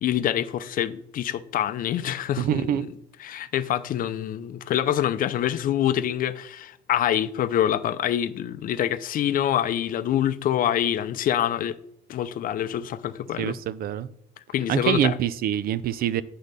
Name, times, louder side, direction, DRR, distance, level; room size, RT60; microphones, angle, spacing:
voice 1, 0.0-2.9 3.2-11.8 12.1-13.6 14.5-15.2, left 11 dB, 55° left, 0.6 m, -26 dB
voice 2, 2.4-2.9 13.4-14.1 14.7-16.2, right 10 dB, 60° right, 0.5 m, -25 dB
8.1 x 3.8 x 6.7 m
cardioid pair, 110°, 17 cm